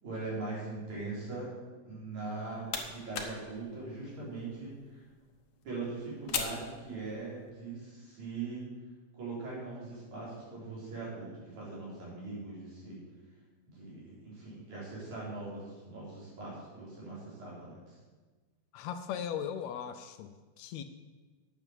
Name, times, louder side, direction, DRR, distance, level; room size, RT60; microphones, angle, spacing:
voice 1, 0.0-1.5 1.9-5.0 5.6-8.7 9.2-13.0 13.7-17.9, right 3 dB, 75° right, -7 dB, 5.6 m, -41 dB
sound 1, 2.2-7.5, left 6 dB, 60° left, 1.5 m, -42 dB
voice 2, 18.7-20.8, left 8 dB, 80° left, 9 dB, 1.8 m, -38 dB
9.4 x 7.0 x 7.4 m, 1.3 s
omnidirectional pair, 3.3 m